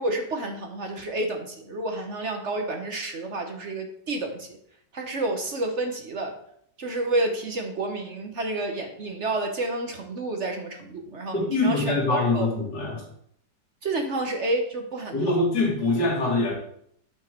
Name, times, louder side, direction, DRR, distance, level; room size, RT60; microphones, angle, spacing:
voice 1, 0.0-4.6 4.9-6.4 6.8-12.5 13.8-15.4, right 2 dB, 50° right, 4 dB, 1.1 m, -30 dB
voice 2, 11.3-13.0 15.1-16.5, left 2 dB, 85° left, -2 dB, 2.8 m, -24 dB
9.5 x 4.6 x 4.4 m, 0.68 s
omnidirectional pair, 1.8 m